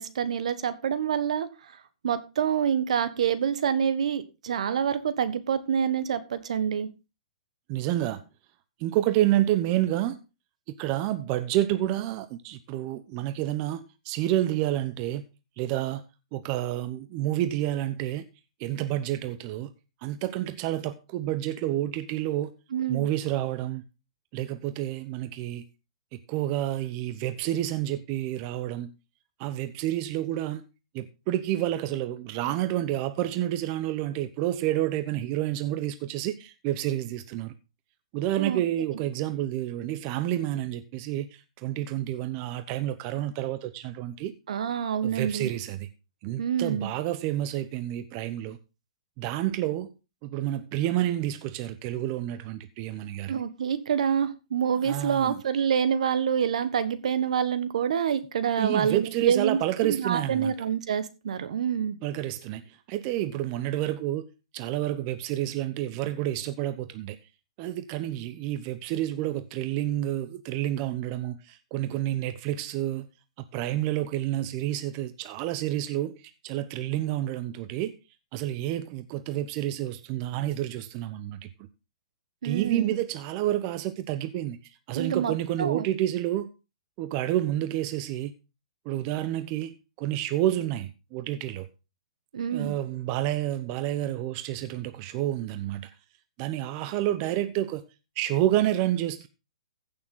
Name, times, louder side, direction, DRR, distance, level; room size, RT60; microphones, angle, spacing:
voice 1, 0.0-1.5 2.0-6.9 22.7-23.0 38.4-38.9 44.5-45.5 46.4-46.9 53.3-62.0 82.4-82.9 84.9-85.3 85.6-85.8 92.3-92.7, right 8 dB, 70° right, 1.4 m, -27 dB
voice 2, 7.7-8.2 8.8-10.2 10.7-15.2 15.6-16.0 16.3-18.3 18.6-19.7 20.0-22.5 22.9-23.8 24.3-25.6 26.1-28.9 29.4-30.6 30.9-37.5 38.1-44.3 45.0-45.9 46.2-48.6 49.2-49.9 50.2-53.4 54.8-55.4 58.6-60.5 62.0-62.6 62.9-64.2 64.5-67.2 67.6-73.1 73.5-77.9 78.3-81.5 82.4-86.5 87.0-88.3 88.8-91.7 92.5-95.9 96.4-97.8 98.2-99.3, right 13 dB, 35° right, 0.9 m, -29 dB
15.5 x 6.8 x 3.8 m
hypercardioid pair, 140°, 4 cm